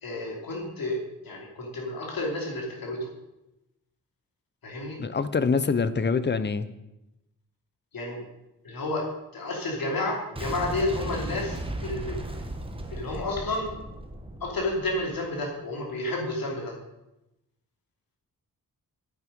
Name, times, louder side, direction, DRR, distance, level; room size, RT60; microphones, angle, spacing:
voice 1, 0.0-3.1 4.6-5.0 7.9-8.2 8.6-9.0 9.3-12.2 12.9-13.7 14.4-16.8, left 2 dB, 75° left, -1 dB, 3.0 m, -31 dB
voice 2, 5.0-6.7, left 5 dB, 30° left, 13 dB, 0.7 m, -25 dB
Boom, 10.4-15.3, right 1 dB, 15° right, 1.2 m, -36 dB
9.5 x 8.9 x 5.2 m, 0.92 s
wide cardioid pair, 110°, 35 cm